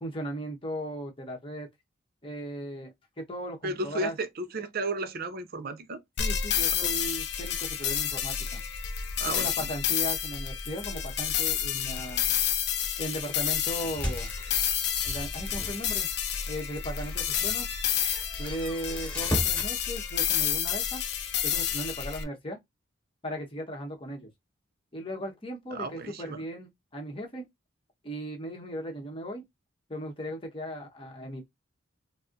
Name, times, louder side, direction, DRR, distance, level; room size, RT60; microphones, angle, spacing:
voice 1, 0.0-1.7 2.2-4.2 6.2-8.6 9.2-12.3 13.0-14.3 15.0-16.1 16.5-17.7 18.4-21.0 21.4-22.6 23.2-24.3 24.9-27.5 28.0-29.4 29.9-31.5, equal, 25° left, 1.0 m, -37 dB
voice 2, 3.6-6.0 6.8-6.9 9.2-9.7 25.7-26.4, right 2 dB, 50° right, 0.5 m, -34 dB
sound 1, 6.2-22.2, left 9 dB, 55° left, 0.5 m, -30 dB
Open then close squeaky door, 13.8-15.9 16.4-16.5 16.9-19.7, equal, 10° left, 1.7 m, -37 dB
4.2 x 2.0 x 2.5 m
head